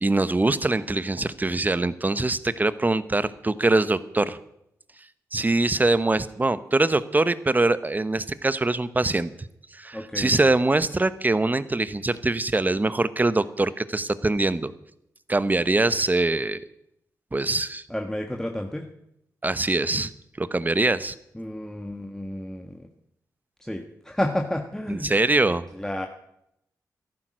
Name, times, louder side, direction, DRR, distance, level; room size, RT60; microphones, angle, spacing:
voice 1, 0.0-4.4 5.3-9.3 9.7-14.7 15.3-16.6 17.3-17.8 19.4-20.1 20.4-21.1 24.9-25.6, right 2 dB, 25° right, 14 dB, 1.0 m, -23 dB
voice 2, 9.9-10.5 17.9-18.9 21.3-22.9 23.6-25.1 25.7-26.1, left 1 dB, 10° left, 3 dB, 1.5 m, -31 dB
13.5 x 11.5 x 6.3 m, 0.77 s
cardioid pair, 55°, 7 cm